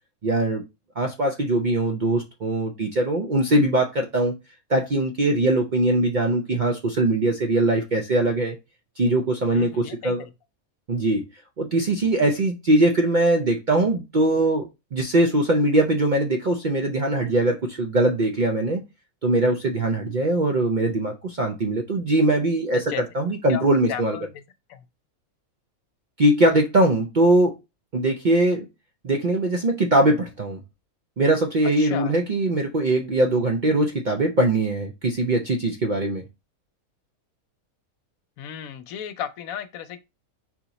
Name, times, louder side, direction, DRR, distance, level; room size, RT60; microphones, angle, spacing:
voice 1, 0.2-0.6 1.0-4.3 4.7-8.6 9.0-10.2 10.9-11.2 11.6-18.8 19.2-24.2 26.2-27.5 27.9-28.7 29.0-30.6 31.2-36.2, right 1 dB, 55° right, 0.5 m, -21 dB
voice 2, 9.5-10.3 22.7-23.0 23.5-23.6 23.9-24.3 24.7-24.8 31.6-32.1 38.4-40.0, left 9 dB, 80° left, 1.0 m, -34 dB
4.4 x 2.9 x 3.9 m
omnidirectional pair, 1.5 m